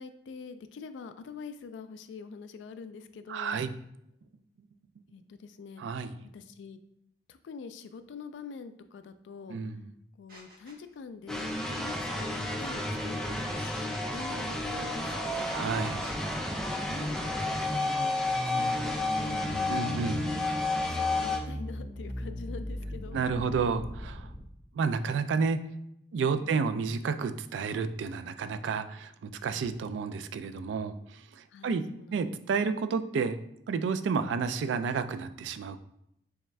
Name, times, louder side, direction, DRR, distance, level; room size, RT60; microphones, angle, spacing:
voice 1, 0.0-3.6 5.1-5.8 6.3-6.8 7.3-9.6 10.2-13.7 14.1-15.7 16.9-18.0 18.3-19.7 20.9-23.2 26.4-26.7 31.5-32.2, left 5 dB, 85° left, 11 dB, 0.3 m, -45 dB
voice 2, 3.3-3.7 5.8-6.2 9.5-9.9 15.5-16.1 19.7-20.3 23.1-24.3 24.7-25.7 26.1-31.8 32.1-33.4 33.7-35.8, right 5 dB, 85° right, 11 dB, 0.3 m, -31 dB
sound 1, 10.3-10.9 11.4-16.1, right 2 dB, 50° right, 0.9 m, -50 dB
sound 2, 11.3-21.4, left 2 dB, 5° left, 0.3 m, -31 dB
sound 3, 17.7-24.4, equal, 35° left, 1.0 m, -39 dB
3.5 x 3.3 x 3.1 m, 0.77 s
head